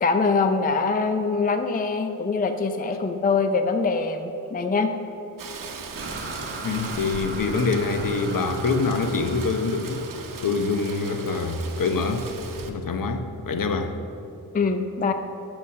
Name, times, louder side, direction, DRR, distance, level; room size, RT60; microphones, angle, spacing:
voice 1, 0.0-4.9 14.5-15.1, left 4 dB, 25° left, 7 dB, 0.4 m, -23 dB
Rain, 5.4-12.7, right 5 dB, 55° right, 0.9 m, -39 dB
sound 1, 5.9-12.0, right 2 dB, 30° right, 1.2 m, -39 dB
voice 2, 6.6-10.0 10.4-12.3 12.7-14.0, left 4 dB, 55° left, 7 dB, 0.8 m, -25 dB
8.4 x 7.1 x 6.4 m, 2.9 s
wide cardioid pair, 115°, 39 cm